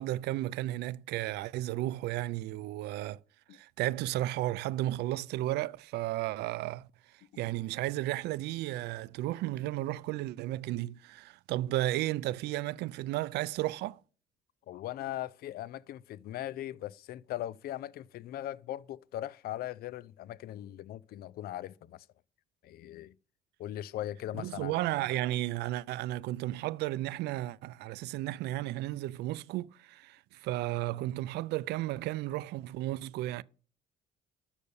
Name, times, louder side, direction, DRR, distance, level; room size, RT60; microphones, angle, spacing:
voice 1, 0.0-3.2 3.5-6.9 7.4-14.0 24.4-33.4, right 16 dB, 80° right, 0.4 m, -33 dB
voice 2, 14.7-22.1 22.6-23.1 23.6-24.7, left 13 dB, 65° left, 0.5 m, -39 dB
8.2 x 6.6 x 6.9 m
cardioid pair, 110°, 17 cm